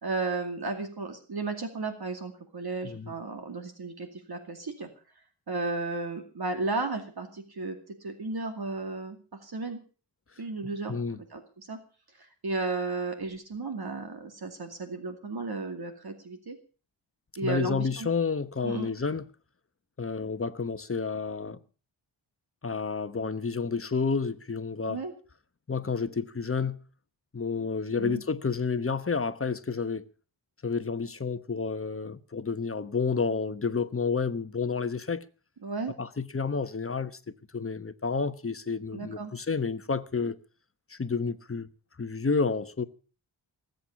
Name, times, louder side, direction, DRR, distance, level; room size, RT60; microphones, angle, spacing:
voice 1, 0.0-4.9 5.5-9.8 10.4-11.8 12.2-16.6 17.4-18.1 18.6-18.9 24.9-25.1 28.0-28.2 35.6-35.9 38.9-39.3, right 3 dB, 50° right, 2.4 m, -34 dB
voice 2, 2.8-3.1 10.9-11.2 17.4-19.3 20.0-21.6 22.6-25.0 25.7-26.8 27.3-30.0 30.6-35.3 36.0-37.2 37.5-40.4 40.9-41.7 42.0-42.8, left 4 dB, 30° left, 1.0 m, -30 dB
19.0 x 8.1 x 7.0 m
wide cardioid pair, 80°, 48 cm